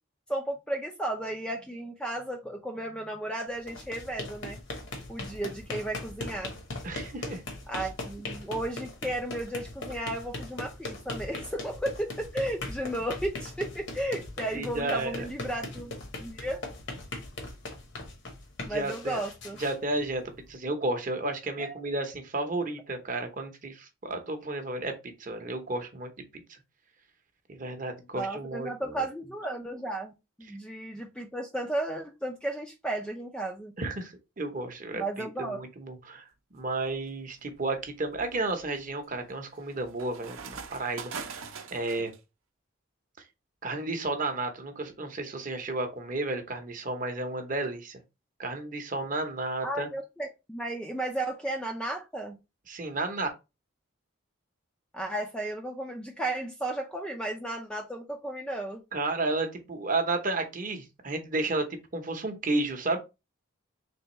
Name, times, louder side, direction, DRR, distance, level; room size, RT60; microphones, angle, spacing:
voice 1, 0.3-4.6 5.1-6.5 7.7-15.9 16.2-16.6 18.7-19.6 21.6-21.8 28.1-30.1 30.4-33.7 34.9-35.6 49.6-52.4 54.9-58.8, right 1 dB, 5° left, 0.4 m, -34 dB
sound 1, 3.5-20.5, left 2 dB, 60° left, 1.0 m, -40 dB
voice 2, 6.8-7.4 14.5-15.3 18.7-19.2 19.6-20.2 20.5-26.1 27.5-29.0 30.5-30.6 33.8-36.3 36.5-41.3 41.7-42.1 43.6-48.0 48.4-49.9 52.7-53.3 58.9-63.0, right 2 dB, 40° right, 0.7 m, -32 dB
sound 2, 36.6-37.0 37.6-42.2, right 5 dB, 75° right, 0.6 m, -43 dB
3.5 x 3.4 x 2.9 m
head